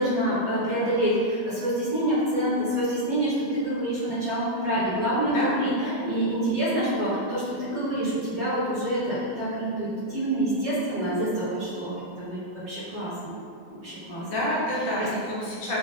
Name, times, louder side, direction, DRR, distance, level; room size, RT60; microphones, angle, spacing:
voice 1, 0.0-5.7 6.0-11.9 12.2-12.4 12.6-13.3 13.7-14.2 15.0-15.1, right 1 dB, 50° right, -13 dB, 1.5 m, -27 dB
voice 2, 5.3-5.9 14.2-15.8, left 1 dB, 75° left, -6 dB, 1.2 m, -29 dB
4.0 x 2.1 x 2.4 m, 2.4 s
omnidirectional pair, 2.2 m